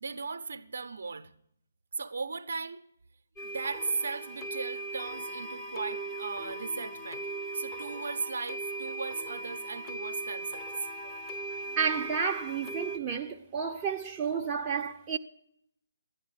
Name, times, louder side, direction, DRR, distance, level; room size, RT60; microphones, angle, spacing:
voice 1, 0.0-1.3 2.0-2.8 3.4-7.3 7.5-10.7, right 4 dB, 55° right, 0.8 m, -37 dB
sound 1, 3.4-13.0, right 2 dB, 10° left, 0.9 m, -39 dB
voice 2, 11.8-15.2, right 6 dB, 20° right, 0.7 m, -31 dB
12.5 x 10.0 x 9.1 m
figure-of-eight pair, 140°, 0 cm